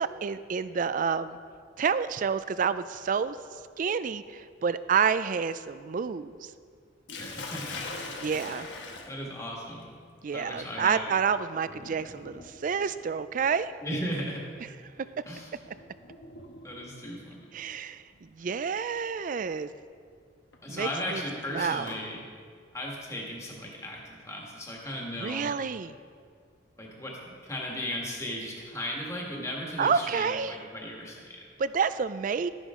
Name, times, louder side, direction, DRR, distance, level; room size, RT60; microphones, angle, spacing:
voice 1, 0.0-1.4 1.8-3.4 3.8-6.5 8.2-8.7 10.2-13.7 17.5-19.7 20.7-21.2 21.5-21.9 25.2-26.0 29.8-30.6 31.6-32.5, right 6 dB, 45° right, 14 dB, 0.3 m, -29 dB
Sink (filling or washing), 7.1-17.0 18.1-18.5 19.0-19.1 20.5-22.0, left 3 dB, 70° left, 1.2 m, -44 dB
voice 2, 7.2-7.9 9.1-9.9 10.3-11.1 11.7-12.0 13.8-14.4 15.3-15.5 16.6-17.5 20.6-22.2 22.7-25.5 26.8-31.4, left 1 dB, 15° left, -2 dB, 1.7 m, -36 dB
12.5 x 10.5 x 3.7 m, 2.1 s
head